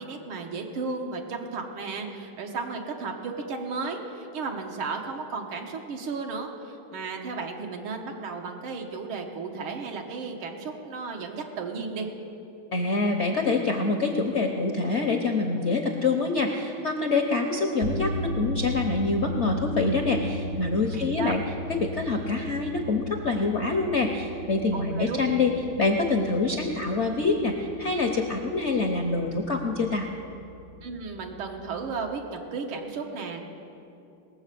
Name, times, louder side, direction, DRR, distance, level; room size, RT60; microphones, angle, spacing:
voice 1, 0.0-12.1 21.0-21.3 24.7-25.2 30.8-33.4, right 4 dB, 90° right, 2 dB, 2.0 m, -34 dB
voice 2, 12.7-21.4 21.7-25.5 25.8-30.1, left 3 dB, 65° left, 3 dB, 0.7 m, -26 dB
sound 1, 17.8-32.1, equal, 65° right, 0.7 m, -36 dB
19.0 x 7.6 x 6.7 m, 2.7 s
omnidirectional pair, 2.2 m